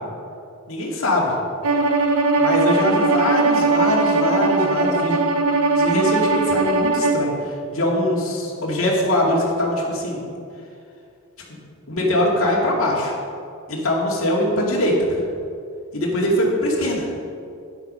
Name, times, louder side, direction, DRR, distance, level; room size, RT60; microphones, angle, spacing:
voice 1, 0.7-1.3 2.3-5.2 5.8-10.2 11.9-13.2 13.7-15.2 15.9-17.1, left 1 dB, 65° left, -3 dB, 2.3 m, -22 dB
Bowed string instrument, 1.6-7.3, right 3 dB, 85° right, 0.9 m, -19 dB
9.9 x 8.2 x 5.6 m, 2.5 s
head